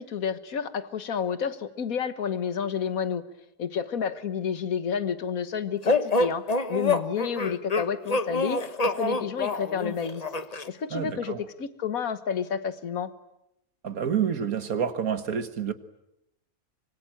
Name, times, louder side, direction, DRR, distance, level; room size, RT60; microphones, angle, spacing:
voice 1, 0.0-3.2 3.6-10.2 10.7-13.1, left 7 dB, 65° left, 1.7 m, -30 dB
sound 1, 5.8-10.7, left 3 dB, 30° left, 1.1 m, -26 dB
voice 2, 10.9-11.4 13.8-15.7, right 8 dB, 70° right, 1.8 m, -28 dB
25.0 x 24.0 x 8.9 m
omnidirectional pair, 1.6 m